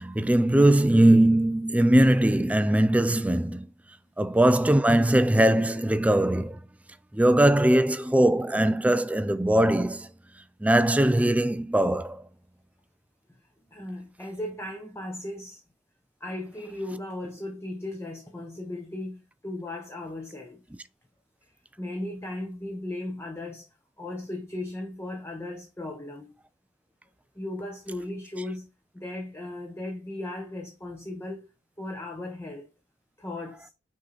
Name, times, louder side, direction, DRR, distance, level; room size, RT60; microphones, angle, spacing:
voice 1, 0.0-3.7 4.2-6.6 7.1-10.1 10.6-12.2, right 1 dB, 5° right, 0.3 m, -21 dB
voice 2, 13.7-15.6 16.2-20.6 21.8-23.7 24.0-26.3 27.3-28.7 28.9-31.5 31.8-32.7 33.2-33.7, left 1 dB, 15° left, 0.8 m, -36 dB
6.3 x 3.8 x 4.1 m
head